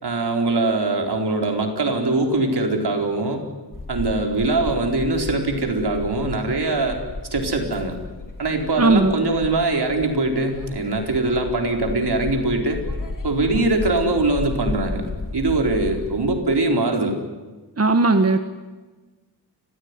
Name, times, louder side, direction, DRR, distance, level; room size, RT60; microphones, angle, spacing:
voice 1, 0.0-3.4 3.9-7.0 7.3-7.9 8.4-12.8 13.2-15.0 15.3-17.2, right 2 dB, 75° right, 3 dB, 4.2 m, -22 dB
sound 1, 3.7-16.4, left 3 dB, 50° left, 2.9 m, -34 dB
voice 2, 8.8-9.1 17.8-18.4, right 3 dB, 35° right, 7 dB, 1.4 m, -17 dB
30.0 x 16.0 x 9.7 m, 1.3 s
wide cardioid pair, 85°, 41 cm